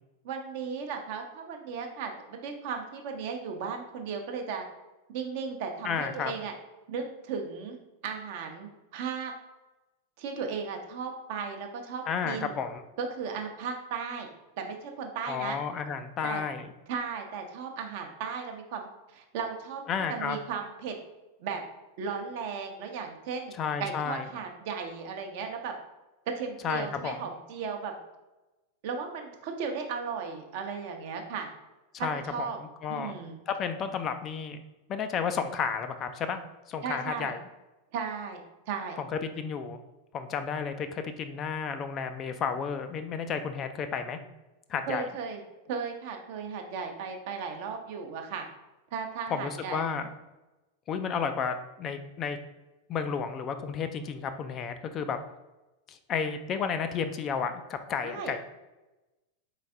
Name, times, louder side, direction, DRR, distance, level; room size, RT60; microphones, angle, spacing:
voice 1, 0.2-4.6 5.1-6.5 6.9-7.8 8.0-9.3 10.2-12.5 13.0-14.3 14.6-15.6 16.2-16.4 16.9-19.8 20.1-21.0 21.4-21.6 22.0-23.5 23.8-25.7 26.3-27.9 28.8-31.5 32.0-32.6 32.9-33.4 36.8-37.3 37.9-38.4 38.7-39.0 44.9-45.4 45.7-48.5 48.9-49.9 58.0-58.3, right 6 dB, 50° right, 4 dB, 0.7 m, -36 dB
voice 2, 5.8-6.3 12.1-12.8 15.3-16.7 19.9-20.4 23.6-24.2 26.6-27.2 31.9-32.5 32.8-33.1 33.5-34.6 34.9-36.4 36.7-37.4 39.1-39.8 40.1-44.2 44.7-45.1 49.3-50.0 50.9-52.4 52.9-55.2 55.9-58.4, left 6 dB, 30° left, 8 dB, 0.3 m, -32 dB
4.1 x 3.2 x 3.5 m, 1.1 s
figure-of-eight pair, 90°, 0 cm